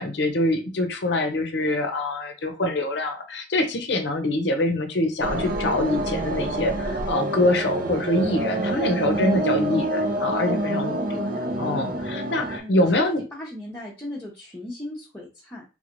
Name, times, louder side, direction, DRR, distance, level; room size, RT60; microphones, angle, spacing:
voice 1, 0.0-11.2 11.6-13.2, left 1 dB, 65° left, 5 dB, 0.6 m, -24 dB
sound 1, 5.2-12.6, right 1 dB, 45° right, 0.6 m, -27 dB
voice 2, 11.1-11.5 12.6-15.6, left 1 dB, 10° left, -6 dB, 0.7 m, -37 dB
3.6 x 3.1 x 2.5 m, 0.31 s
head